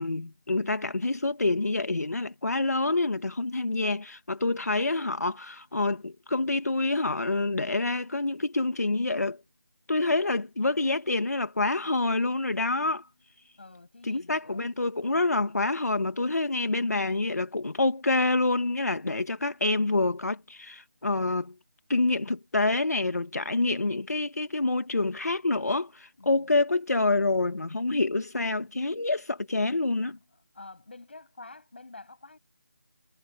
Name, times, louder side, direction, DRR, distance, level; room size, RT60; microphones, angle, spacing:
voice 1, 0.0-9.4 9.9-13.1 14.0-21.5 21.9-30.2, left 2 dB, 80° left, 1.8 m, -27 dB
voice 2, 4.4-4.8 13.6-14.7 26.2-26.6 30.5-32.4, left 3 dB, 45° left, 7.0 m, -48 dB
figure-of-eight pair, 180°, 9 cm